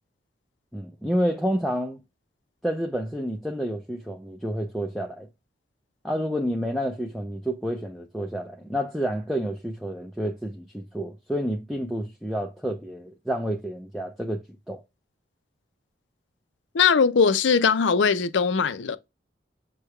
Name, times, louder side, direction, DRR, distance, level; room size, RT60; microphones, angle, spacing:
voice 1, 0.7-2.0 2.6-5.3 6.0-14.4 14.7-14.8, equal, ahead, 0.5 m, -29 dB
voice 2, 16.7-19.0, left 5 dB, 85° left, 0.5 m, -20 dB
6.5 x 2.3 x 3.2 m
head